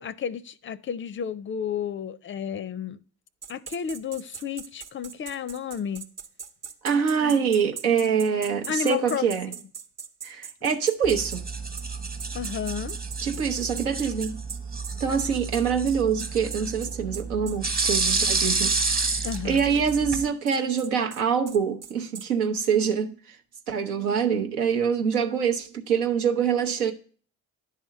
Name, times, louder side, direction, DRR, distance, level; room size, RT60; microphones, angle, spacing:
voice 1, 0.0-3.0 3.5-6.0 7.2-7.5 8.7-9.2 12.3-13.0 19.2-19.7, left 7 dB, 30° left, 0.4 m, -32 dB
sound 1, 3.4-11.4 11.8-11.9 12.2-22.3, right 6 dB, 35° right, 0.9 m, -40 dB
voice 2, 6.8-9.5 10.2-11.5 13.2-14.4 15.0-18.7 19.0-23.4 23.7-26.9, right 7 dB, 90° right, 0.9 m, -25 dB
sound 2, 11.0-20.2, right 3 dB, 20° right, 1.2 m, -29 dB
10.0 x 3.6 x 6.3 m
hypercardioid pair, 60°, 43 cm